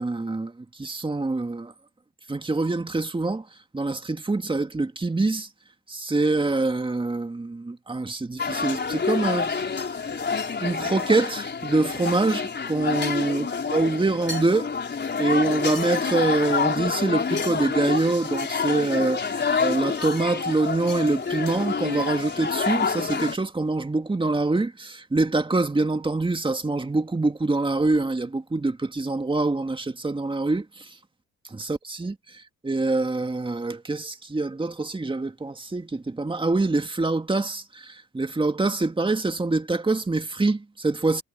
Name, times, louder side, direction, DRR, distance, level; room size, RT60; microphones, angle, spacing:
voice 1, 0.0-1.7 2.3-3.5 3.7-5.5 5.9-9.5 10.6-14.7 15.2-30.9 31.4-41.2, right 2 dB, 15° right, 2.1 m, -25 dB
sound 1, 8.4-23.4, left 5 dB, 35° left, 4.7 m, -28 dB
cardioid pair, 90°, 30 cm